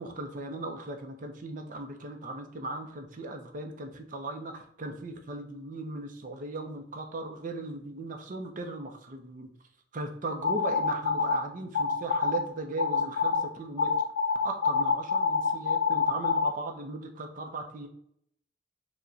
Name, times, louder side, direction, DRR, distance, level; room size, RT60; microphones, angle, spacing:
voice 1, 0.0-9.5 9.9-13.9 14.4-17.9, right 2 dB, 45° right, 4 dB, 0.5 m, -37 dB
sound 1, 10.4-11.4 11.7-12.4 12.8-13.4 13.8-16.5, left 5 dB, 90° left, 0.5 m, -26 dB
4.7 x 2.1 x 2.6 m, 0.70 s
head